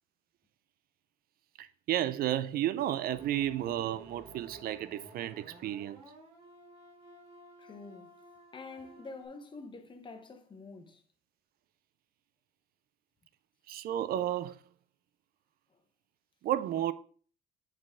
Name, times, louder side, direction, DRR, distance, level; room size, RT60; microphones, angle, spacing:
voice 1, 1.6-6.0 13.7-14.6 16.4-16.9, right 12 dB, 60° right, 0.4 m, -32 dB
sound 1, 3.1-9.3, right 2 dB, 35° right, 2.7 m, -53 dB
voice 2, 7.6-8.1 8.5-11.0 15.7-15.8, left 3 dB, 30° left, 1.1 m, -47 dB
8.9 x 4.0 x 3.7 m
cardioid pair, 110°, 17 cm